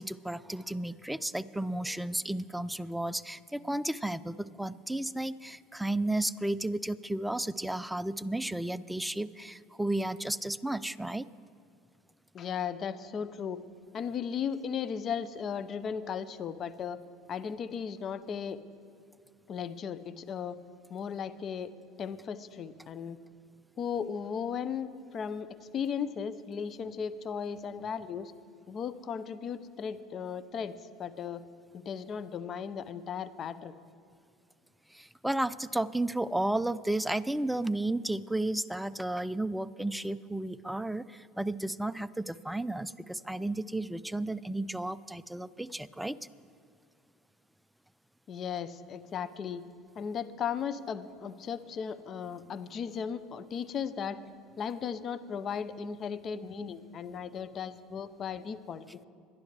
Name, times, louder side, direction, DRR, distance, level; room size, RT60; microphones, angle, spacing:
voice 1, 0.0-11.3 34.9-46.2, right 1 dB, 5° right, 17 dB, 0.4 m, -33 dB
voice 2, 12.3-13.6 13.9-17.0 17.3-18.6 19.5-20.6 20.9-21.7 22.0-23.2 23.8-24.9 25.1-25.5 25.7-28.3 28.7-31.4 31.7-33.8 48.3-49.6 50.0-54.2 54.6-58.8, left 7 dB, 45° left, 13 dB, 0.7 m, -36 dB
22.0 x 11.5 x 3.3 m, 2.3 s
hypercardioid pair, 80°, 0 cm